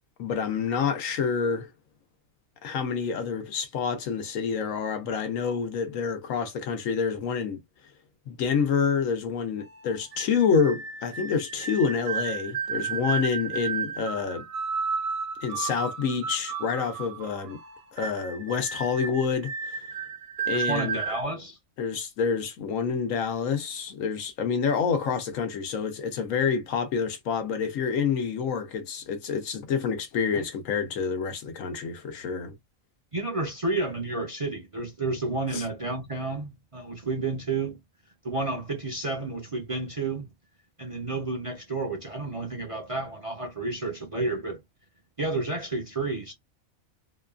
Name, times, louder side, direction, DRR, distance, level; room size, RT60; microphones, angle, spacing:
voice 1, 0.2-1.7 2.6-7.6 8.3-14.5 15.4-17.6 17.9-19.8 20.5-21.0 21.8-32.5 35.5-35.6, left 6 dB, 75° left, 1.1 m, -28 dB
sound 1, 9.6-21.2, right 6 dB, 80° right, 1.1 m, -33 dB
voice 2, 20.5-21.6 33.1-37.8 38.2-40.3 40.8-44.6 45.2-46.3, right 3 dB, 35° right, 0.6 m, -31 dB
2.8 x 2.3 x 2.3 m
omnidirectional pair, 1.5 m